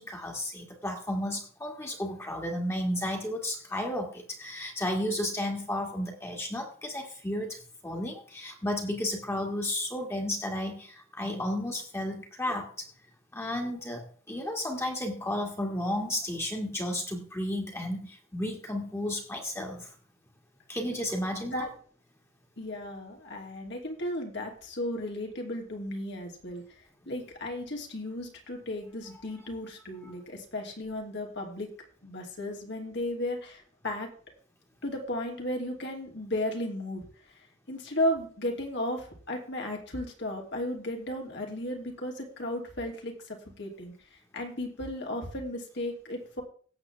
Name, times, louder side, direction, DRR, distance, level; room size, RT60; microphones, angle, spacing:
voice 1, 0.0-12.9 13.3-19.9 20.7-21.7 30.0-30.1, left 1 dB, 15° left, 1 dB, 1.9 m, -33 dB
voice 2, 21.3-21.7 22.6-26.6 27.1-31.7 32.0-34.1 34.8-37.1 37.7-43.9 44.3-46.4, left 1 dB, 55° left, 1 dB, 2.8 m, -34 dB
17.5 x 7.6 x 3.4 m, 0.44 s
head